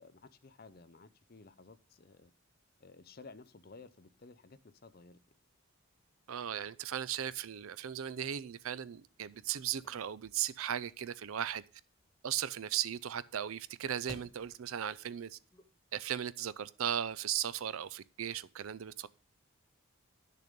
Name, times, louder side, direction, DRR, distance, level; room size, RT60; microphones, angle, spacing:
voice 1, 0.0-2.3 2.8-5.2, left 3 dB, 45° left, 0.6 m, -55 dB
voice 2, 6.3-11.6 12.2-15.4 15.9-19.1, right 10 dB, 75° right, 0.5 m, -37 dB
sound 1, 9.0-16.1, left 1 dB, 20° left, 0.9 m, -59 dB
10.0 x 6.7 x 5.2 m
head